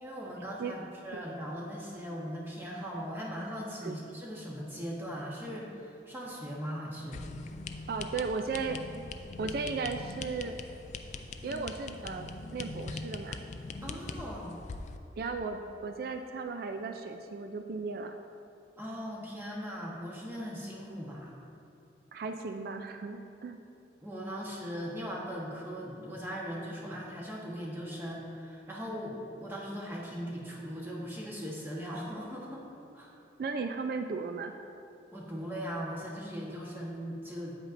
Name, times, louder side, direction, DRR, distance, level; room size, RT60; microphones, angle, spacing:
voice 1, 0.0-7.2 13.8-14.6 18.8-21.3 24.0-32.7 32.9-33.1 35.1-37.6, equal, 10° right, -4 dB, 1.1 m, -39 dB
sound 1, 7.1-15.0, left 3 dB, 40° left, 0.3 m, -42 dB
voice 2, 7.9-8.8 9.4-10.6 11.4-13.4 15.2-18.1 22.1-23.6 33.4-34.5, right 4 dB, 55° right, 6 dB, 0.3 m, -36 dB
9.0 x 8.1 x 2.5 m, 2.6 s
head